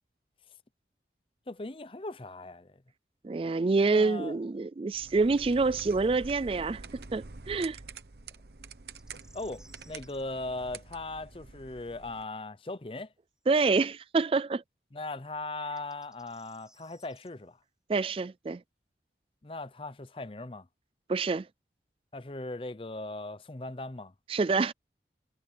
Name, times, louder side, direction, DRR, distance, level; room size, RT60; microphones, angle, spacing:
voice 1, 1.5-2.7 3.8-4.4 9.3-13.1 14.9-17.6 19.4-20.7 22.1-24.1, left 2 dB, 30° left, 0.7 m, -39 dB
voice 2, 3.2-7.8 13.5-14.6 17.9-18.6 21.1-21.5 24.3-24.7, right 3 dB, 30° right, 0.3 m, -27 dB
sound 1, 4.9-12.2, right 4 dB, 65° right, 1.0 m, -47 dB
sound 2, 8.9-10.2 13.4-13.5 15.6-17.3, right 1 dB, 5° right, 3.0 m, -60 dB
head